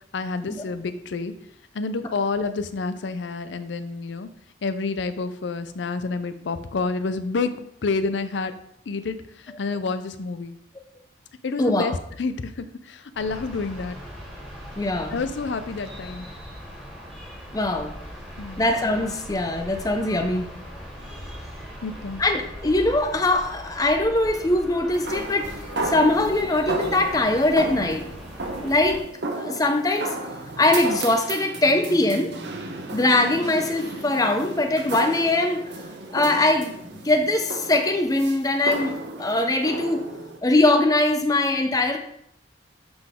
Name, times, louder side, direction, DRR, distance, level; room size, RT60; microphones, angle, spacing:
voice 1, 0.1-1.4 1.7-4.3 4.6-8.5 8.9-10.6 11.4-14.0 15.1-16.3 18.4-18.7 21.8-22.2, left 4 dB, 80° left, 11 dB, 0.5 m, -29 dB
voice 2, 11.6-11.9 14.8-15.2 17.5-17.9 18.6-20.5 22.2-25.5 25.8-28.0 28.6-29.0 29.4-30.2 30.6-32.3 32.9-35.7 36.1-40.0 40.4-42.0, left 2 dB, 20° left, 6 dB, 0.6 m, -22 dB
sound 1, 13.1-29.0, equal, ahead, 2.0 m, -40 dB
sound 2, 24.9-40.4, right 2 dB, 70° right, 0.9 m, -34 dB
7.7 x 4.0 x 3.6 m, 0.73 s
head